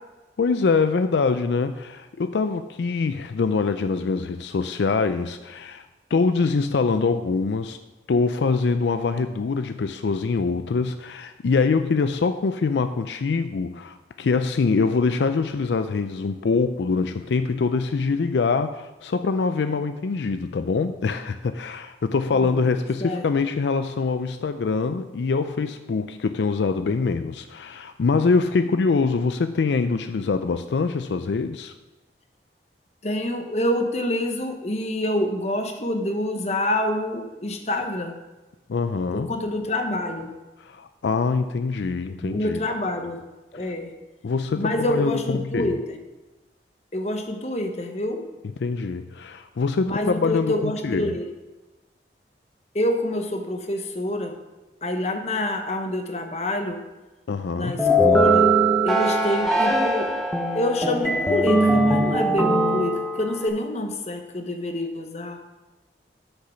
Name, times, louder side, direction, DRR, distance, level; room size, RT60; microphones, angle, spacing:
voice 1, 0.4-5.8 6.1-7.8 8.1-31.7 38.7-39.3 40.6-42.6 43.6-43.7 44.2-45.8 48.6-51.2 57.3-57.9, left 4 dB, 80° left, 9 dB, 0.4 m, -24 dB
voice 2, 22.3-22.7 23.0-23.3 33.0-38.2 39.1-40.3 42.2-43.2 43.5-43.9 44.6-46.0 46.9-48.2 49.8-51.3 52.7-54.3 54.8-56.8 57.5-58.5 58.8-60.1 60.5-65.4, left 1 dB, 35° left, 5 dB, 1.0 m, -27 dB
sound 1, 57.8-63.5, right 1 dB, ahead, 0.8 m, -21 dB
8.0 x 6.7 x 5.7 m, 1.1 s
head